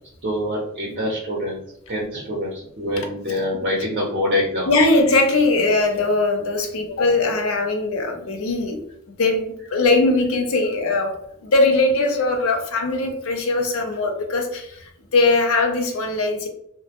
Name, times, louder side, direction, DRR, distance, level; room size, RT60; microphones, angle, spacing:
voice 1, 0.2-1.6 1.9-4.7, left 1 dB, 50° right, -2 dB, 0.6 m, -25 dB
voice 2, 4.7-11.2 11.4-14.8 15.1-16.5, left 2 dB, 85° left, 4 dB, 0.5 m, -20 dB
2.1 x 2.0 x 2.8 m, 0.76 s
head